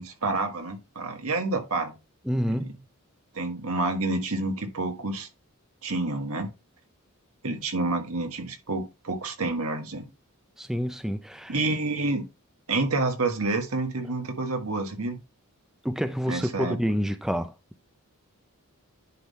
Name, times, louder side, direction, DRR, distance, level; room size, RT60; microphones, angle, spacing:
voice 1, 0.0-1.9 2.5-2.7 3.3-5.3 5.8-6.5 7.4-10.1 11.5-12.2 12.7-15.2 16.3-16.8, right 2 dB, 80° right, 1.7 m, -28 dB
voice 2, 2.3-2.9 10.6-11.6 15.8-17.5, equal, ahead, 0.5 m, -28 dB
10.5 x 3.8 x 4.2 m
head